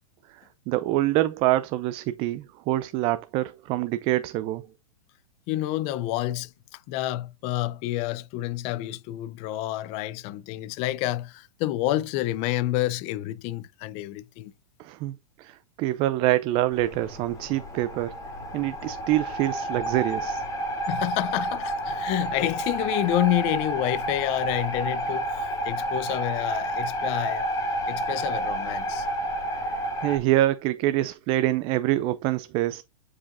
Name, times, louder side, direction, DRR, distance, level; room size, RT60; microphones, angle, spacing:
voice 1, 0.7-4.7 14.8-18.1 18.5-20.4 29.5-32.8, right 15 dB, 30° right, 0.4 m, -26 dB
voice 2, 5.5-6.5 6.9-14.5 20.9-27.5 27.9-29.1, left 15 dB, 35° left, 0.5 m, -28 dB
sound 1, 16.7-30.2, right 1 dB, 20° left, 2.7 m, -30 dB
9.6 x 4.9 x 2.5 m
hypercardioid pair, 135°, 18 cm